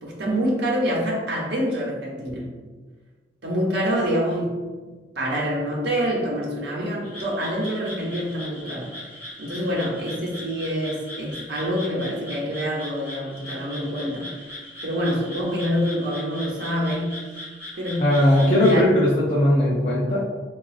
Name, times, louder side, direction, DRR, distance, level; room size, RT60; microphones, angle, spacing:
voice 1, 0.0-2.6 3.4-9.0 9.4-17.3 17.7-18.8, equal, 65° right, -3 dB, 0.8 m, -26 dB
Frog, 7.0-18.8, left 1 dB, 15° right, 1.4 m, -39 dB
voice 2, 18.0-20.3, left 1 dB, 35° left, -8 dB, 0.5 m, -18 dB
4.0 x 2.4 x 2.4 m, 1.3 s
head